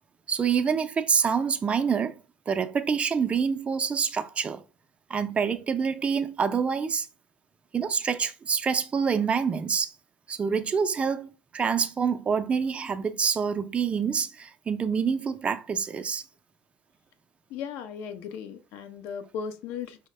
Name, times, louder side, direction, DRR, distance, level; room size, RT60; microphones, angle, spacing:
voice 1, 0.3-2.2 2.5-4.6 5.1-7.1 7.7-9.9 10.3-16.2, right 6 dB, 25° right, 0.4 m, -26 dB
voice 2, 17.5-20.1, left 7 dB, 65° left, 0.5 m, -37 dB
4.7 x 2.1 x 3.2 m
hypercardioid pair, 75°, 4 cm